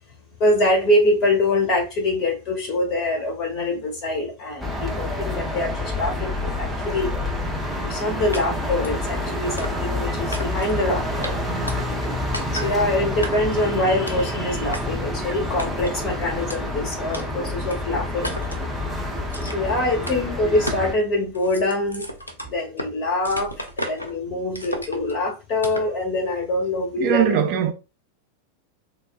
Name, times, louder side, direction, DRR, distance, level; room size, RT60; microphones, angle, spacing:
voice 1, 0.4-7.1 7.8-11.3 12.5-18.3 19.4-22.1 22.5-27.3, left 1 dB, 30° left, 1.3 m, -24 dB
sound 1, 4.6-20.9, left 1 dB, ahead, 0.6 m, -28 dB
sound 2, 8.3-8.4 8.8-9.0 9.6-10.0 10.3-10.8 11.2-11.3 11.7-12.1 12.3-12.7 13.2-13.6 14.1-14.3 14.7-14.8 15.6-16.0 16.5-16.6 17.1-17.2 17.7-17.8 18.2-18.6 19.3-19.7 20.1-20.2 20.7-20.9 21.2-22.9 23.2-24.1 24.5-25.1 25.6-25.9, equal, 80° left, 0.5 m, -33 dB
voice 2, 27.0-27.7, right 9 dB, 40° right, 0.5 m, -20 dB
3.4 x 2.1 x 2.4 m
figure-of-eight pair, 90°, 0 cm